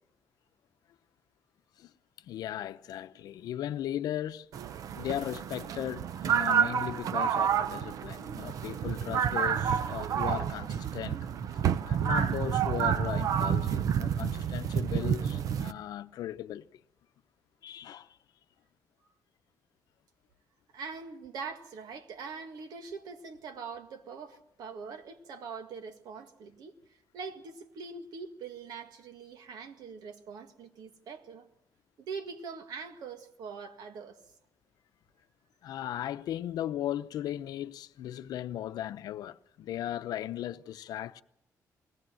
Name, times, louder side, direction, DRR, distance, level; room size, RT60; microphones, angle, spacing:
voice 1, 2.2-4.5 4.9-11.2 11.5-16.7 17.6-18.2 35.6-41.2, left 12 dB, 90° left, 0.7 m, -37 dB
sound 1, 4.5-15.7, right 8 dB, 65° right, 0.7 m, -29 dB
voice 2, 20.7-26.7 27.1-31.5 32.0-34.2, right 5 dB, 85° right, 1.9 m, -43 dB
21.5 x 18.5 x 7.7 m
cardioid pair, 160°, 7 cm